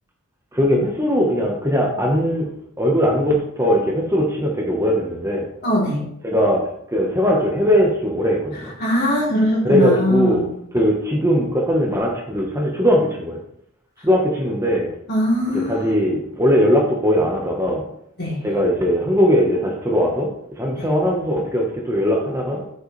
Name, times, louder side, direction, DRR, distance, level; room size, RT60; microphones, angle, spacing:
voice 1, 0.5-2.5 2.8-5.5 6.2-6.6 6.9-8.7 9.6-10.5 10.7-13.4 14.0-14.9 15.5-17.8 18.4-20.3 20.6-22.6, equal, 15° right, -1 dB, 1.1 m, -19 dB
voice 2, 5.6-6.0 8.8-10.5 15.1-15.9 18.2-18.4 20.8-20.9, left 1 dB, 50° left, -5 dB, 3.4 m, -21 dB
8.0 x 6.5 x 3.3 m, 0.72 s
head